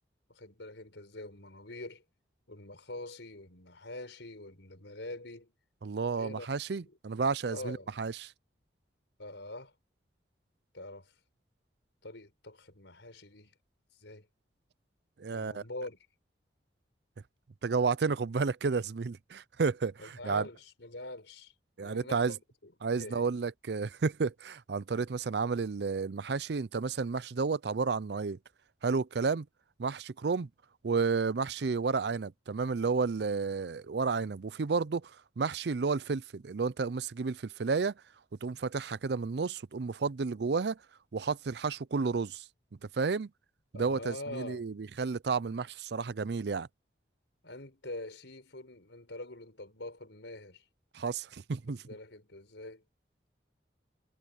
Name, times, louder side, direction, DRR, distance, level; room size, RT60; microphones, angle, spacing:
voice 1, 0.3-2.0 2.5-5.5 6.2-6.5 6.8-7.0 7.4-7.9 9.2-9.7 10.7-11.1 12.0-13.5 14.0-14.3 15.3-16.0 20.0-21.5 21.8-23.3 43.7-44.7 47.4-50.6 51.7-52.8, left 2 dB, 85° left, 4.9 m, -44 dB
voice 2, 5.8-8.3 15.2-15.6 17.6-20.4 21.8-22.3 22.8-28.4 28.8-29.5 29.8-30.5 30.8-35.1 35.4-37.9 38.4-40.8 41.1-42.4 42.9-43.3 43.7-46.7 50.9-51.8, right 4 dB, 65° right, 0.5 m, -31 dB
head